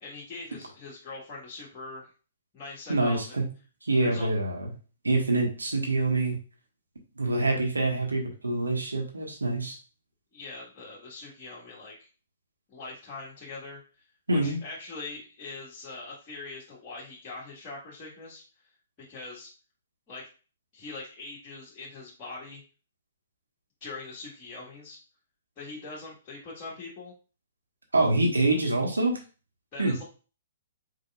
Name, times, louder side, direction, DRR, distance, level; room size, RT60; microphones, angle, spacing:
voice 1, 0.0-2.1 2.5-3.4 4.0-4.3 10.3-12.1 12.7-13.8 14.3-18.4 19.1-19.5 20.1-20.3 20.7-22.6 23.8-25.0 25.6-27.1 29.7-30.0, left 3 dB, 25° left, -6 dB, 1.6 m, -42 dB
voice 2, 2.9-3.4 3.8-4.7 5.0-6.3 7.2-9.8 14.3-14.6 27.9-29.2 29.8-29.9, right 2 dB, 80° right, 1 dB, 1.4 m, -25 dB
5.2 x 4.3 x 2.4 m, 0.36 s
figure-of-eight pair, 120°, 0 cm